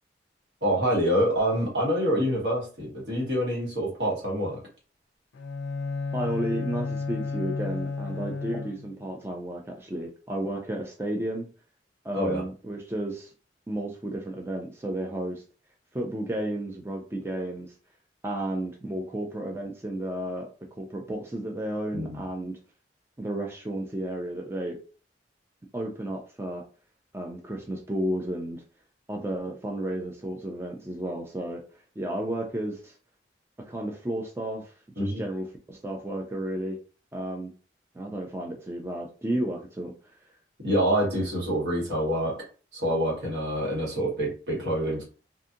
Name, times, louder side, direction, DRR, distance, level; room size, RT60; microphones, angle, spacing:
voice 1, 0.6-4.6 12.1-12.4 21.9-22.2 35.0-35.2 40.6-42.3 42.7-45.0, equal, 75° right, -4 dB, 1.4 m, -26 dB
Bowed string instrument, 5.3-9.1, left 4 dB, 85° left, 0.4 m, -32 dB
voice 2, 6.1-11.5 12.0-13.3 13.7-15.4 15.9-17.7 18.2-22.6 23.2-24.8 25.7-26.6 27.1-28.6 29.1-31.6 32.0-32.9 33.6-36.8 37.1-37.5 37.9-39.9, right 1 dB, 15° right, 1 dB, 0.3 m, -32 dB
2.7 x 2.5 x 2.4 m, 0.38 s
head